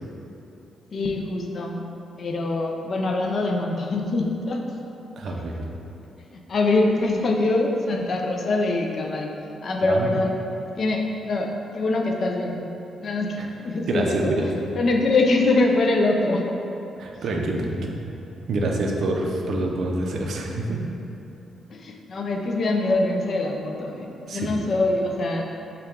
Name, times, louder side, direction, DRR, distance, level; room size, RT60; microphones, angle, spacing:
voice 1, 0.9-1.8 2.2-4.6 6.3-9.3 9.6-10.3 10.8-12.7 13.0-14.2 14.8-16.6 21.7-25.4, left 2 dB, 40° left, 2 dB, 0.4 m, -24 dB
voice 2, 5.2-5.6 9.8-10.1 13.4-13.5 13.9-14.5 17.0-18.0 18.5-20.8 24.3-24.5, right 2 dB, 55° right, 0 dB, 0.5 m, -26 dB
6.6 x 2.3 x 3.6 m, 2.9 s
wide cardioid pair, 165°, 0 cm